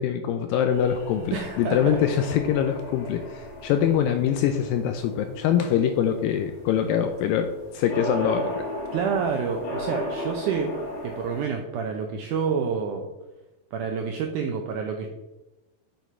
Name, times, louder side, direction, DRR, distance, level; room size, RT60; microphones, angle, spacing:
voice 1, 0.0-8.7, left 9 dB, 85° left, 7 dB, 2.0 m, -24 dB
sound 1, 0.7-11.4, equal, 45° left, 2.4 m, -36 dB
voice 2, 1.3-2.0 8.9-10.7 11.0-13.1 13.7-15.1, right 6 dB, 90° right, 3 dB, 1.7 m, -28 dB
8.2 x 6.2 x 4.4 m, 1.0 s
omnidirectional pair, 4.6 m